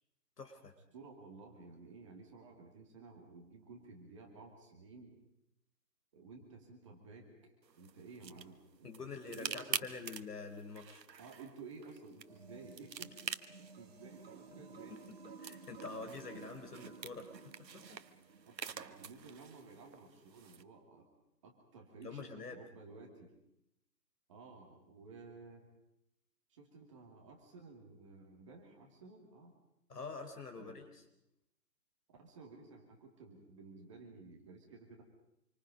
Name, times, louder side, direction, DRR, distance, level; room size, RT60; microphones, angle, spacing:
voice 1, 0.4-0.7 8.8-11.0 14.9-15.0 15.4-17.3 17.6-17.8 22.0-22.6 29.9-30.9, left 4 dB, 70° left, 6 dB, 4.4 m, -46 dB
voice 2, 0.9-5.2 6.1-9.9 11.2-13.3 13.6-15.1 18.5-21.1 21.4-23.3 24.3-25.7 26.5-29.5 30.5-30.8 32.2-35.0, right 4 dB, 20° right, 0 dB, 2.4 m, -54 dB
sound 1, 7.6-20.6, right 6 dB, 80° right, 1.3 m, -47 dB
sound 2, 12.2-18.6, right 5 dB, 35° right, 2.4 m, -54 dB
26.5 x 25.0 x 5.3 m, 0.84 s
hypercardioid pair, 170°, 49 cm